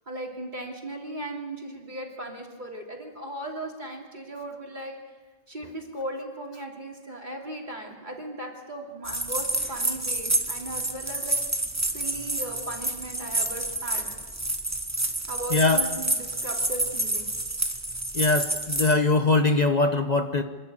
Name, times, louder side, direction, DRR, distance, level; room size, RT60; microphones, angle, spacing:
voice 1, 0.1-5.0 5.5-11.4 11.9-14.1 15.3-17.3, right 1 dB, 45° right, 0 dB, 3.2 m, -37 dB
sound 1, 9.1-18.9, right 1 dB, 15° right, 1.2 m, -29 dB
voice 2, 15.5-15.8 18.1-20.4, left 3 dB, 40° left, 7 dB, 1.0 m, -22 dB
27.0 x 11.0 x 8.6 m, 1.4 s
omnidirectional pair, 1.1 m